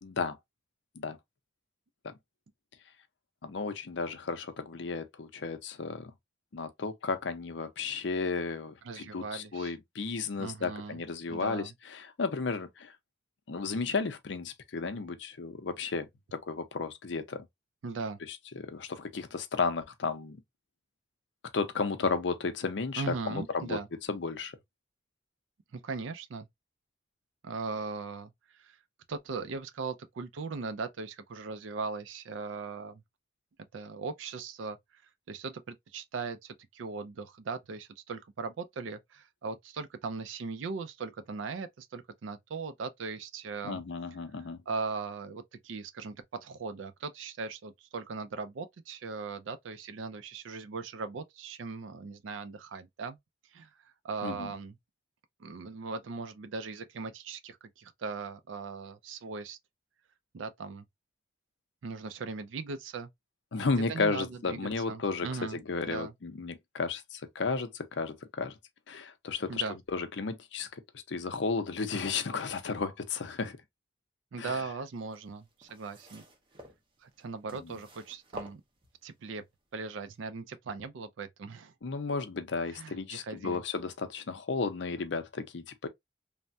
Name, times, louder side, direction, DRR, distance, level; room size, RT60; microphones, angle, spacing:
voice 1, 0.0-0.4 1.0-1.2 2.0-2.1 3.4-6.1 6.5-12.9 13.5-17.5 18.3-20.4 21.5-23.8 24.1-24.5 43.6-44.6 54.2-54.5 63.5-68.6 68.9-69.6 69.9-73.6 74.4-74.6 77.5-77.6 81.8-85.9, left 4 dB, 65° left, 0.5 m, -33 dB
voice 2, 8.8-9.7 10.4-11.0 11.3-11.7 17.8-18.2 23.0-23.9 25.7-26.5 27.4-28.8 29.1-33.0 33.7-35.0 35.3-43.8 44.7-53.2 53.5-54.8 55.4-59.6 60.3-60.8 61.8-63.1 63.6-65.6 65.8-66.1 69.5-69.7 74.3-76.2 77.0-78.6 79.0-79.4 79.7-81.7 82.7-83.6, right 4 dB, 75° right, 0.4 m, -39 dB
sound 1, 75.0-79.2 80.0-80.1, equal, 25° right, 0.6 m, -50 dB
3.3 x 2.1 x 2.6 m
head